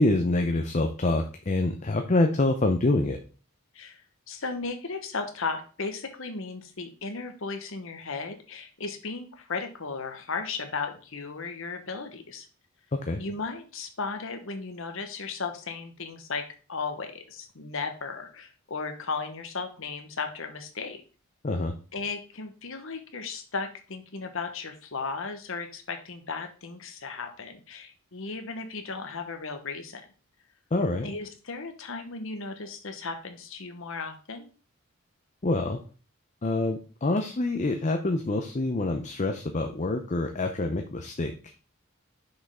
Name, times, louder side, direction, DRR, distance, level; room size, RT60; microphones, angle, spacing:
voice 1, 0.0-3.2 13.1-13.2 21.4-21.7 30.7-31.1 35.4-35.8 36.4-41.3, left 2 dB, 35° left, 5 dB, 0.6 m, -26 dB
voice 2, 3.7-12.5 13.2-16.4 16.7-21.0 21.9-30.1 31.0-34.5, left 4 dB, 65° left, 5 dB, 1.1 m, -35 dB
6.2 x 5.3 x 3.6 m, 0.37 s
head